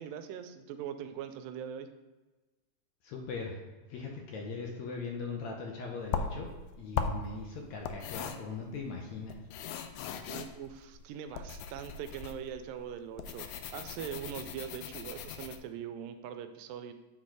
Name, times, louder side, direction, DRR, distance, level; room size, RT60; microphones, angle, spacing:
voice 1, 0.0-1.9 10.3-16.9, right 9 dB, 85° right, 9 dB, 2.3 m, -42 dB
voice 2, 3.0-3.6 3.9-6.5 6.8-9.4, left 4 dB, 70° left, 1 dB, 1.8 m, -40 dB
sound 1, 6.0-15.6, left 7 dB, 85° left, 1.6 m, -39 dB
8.2 x 4.3 x 4.7 m, 1.2 s
omnidirectional pair, 3.9 m